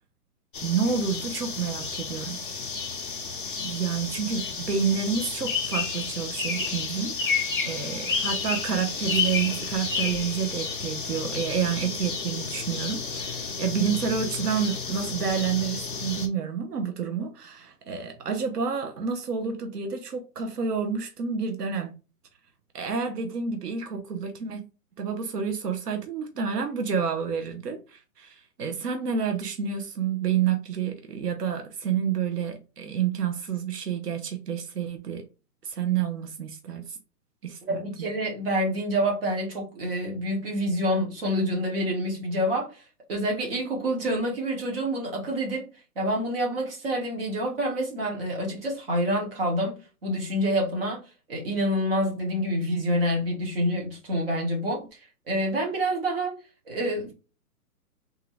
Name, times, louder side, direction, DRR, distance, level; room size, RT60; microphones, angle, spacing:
sound 1, 0.5-16.3, left 5 dB, 35° left, 0.5 m, -31 dB
voice 1, 0.6-2.4 3.6-21.9 22.7-24.6 25.0-35.3 35.6-37.0 37.4-38.1, right 7 dB, 85° right, 0.9 m, -29 dB
voice 2, 37.6-42.8 43.1-45.7 45.9-51.0 51.3-54.8 55.3-56.4 56.7-57.1, equal, 40° right, 1.5 m, -27 dB
3.6 x 2.8 x 3.1 m
hypercardioid pair, 175°, 46 cm